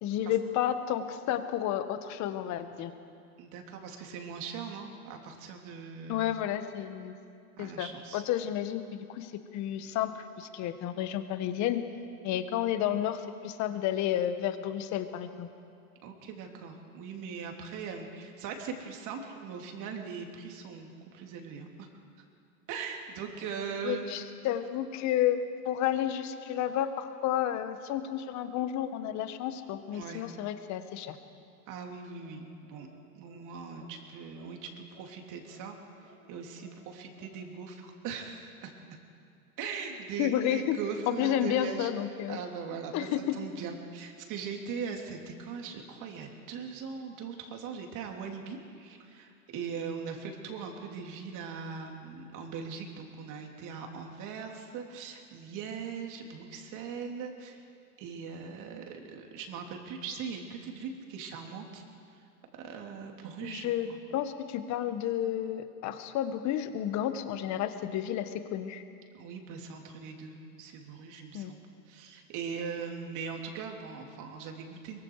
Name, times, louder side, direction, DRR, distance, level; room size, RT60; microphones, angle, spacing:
voice 1, 0.0-2.9 6.1-7.2 7.6-11.8 12.2-15.5 23.8-25.4 25.6-31.2 40.2-40.8 41.1-42.4 42.9-43.3 63.4-63.9 64.1-68.8 71.3-71.5, left 11 dB, 40° left, 10 dB, 1.5 m, -31 dB
voice 2, 3.4-6.3 7.6-8.2 16.0-21.9 22.7-24.3 29.9-30.3 31.7-32.9 33.1-35.8 36.0-38.7 39.6-41.9 42.3-57.6 58.0-61.8 62.5-64.0 69.1-75.0, right 6 dB, 40° right, 2 dB, 3.3 m, -40 dB
sound 1, 32.2-32.4 32.7-32.9 33.2-33.4 33.7-33.9 34.3-34.5 34.9-35.1 35.4-35.6 36.0-36.2 36.6-36.8 37.1-37.3, right 4 dB, 75° right, 7.2 m, -58 dB
23.5 x 23.0 x 4.9 m, 2.5 s
hypercardioid pair, 125°, 45 cm